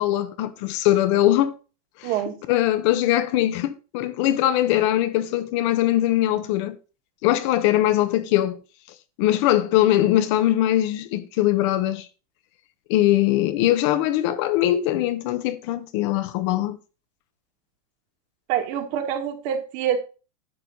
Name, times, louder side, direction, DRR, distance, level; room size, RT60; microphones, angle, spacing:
voice 1, 0.0-1.5 2.0-2.1 2.5-6.8 7.2-8.6 9.2-12.0 12.9-16.8, left 13 dB, 50° left, 1.0 m, -21 dB
voice 2, 2.0-2.4 18.5-20.0, right 9 dB, 45° right, 2.0 m, -26 dB
10.5 x 6.9 x 3.9 m
supercardioid pair, 155°, 19 cm